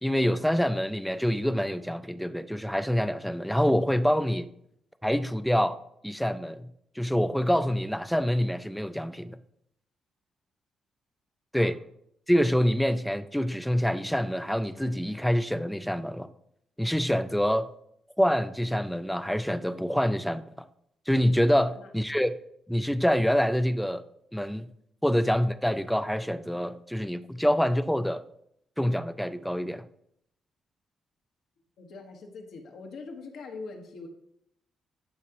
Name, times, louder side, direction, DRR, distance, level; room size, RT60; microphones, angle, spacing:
voice 1, 0.0-4.5 5.0-5.8 6.0-6.7 7.0-9.4 11.5-11.8 12.3-16.3 16.8-17.7 18.2-20.4 21.1-22.3 22.7-24.0 24.3-24.7 25.0-28.2 28.8-29.9, equal, ahead, 0.3 m, -26 dB
voice 2, 31.8-34.1, left 4 dB, 75° left, 1.3 m, -43 dB
11.5 x 5.0 x 2.9 m
cardioid pair, 155°, 0 cm